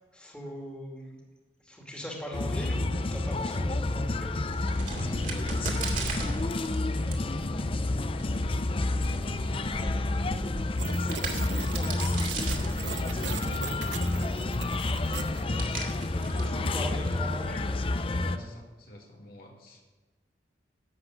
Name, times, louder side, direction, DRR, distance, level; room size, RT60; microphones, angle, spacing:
voice 1, 0.1-1.1 1.6-4.3 16.1-17.8, equal, 5° left, -2 dB, 2.5 m, -40 dB
sound 1, 2.3-18.4, left 2 dB, 30° left, 0.5 m, -29 dB
Crack, 4.3-17.5, right 3 dB, 45° right, 2.4 m, -40 dB
voice 2, 4.9-11.9 12.6-16.9 18.2-19.8, equal, 55° left, 0 dB, 2.3 m, -45 dB
sound 2, 10.8-15.8, right 7 dB, 85° right, 0.8 m, -40 dB
12.0 x 8.1 x 9.2 m, 1.3 s
head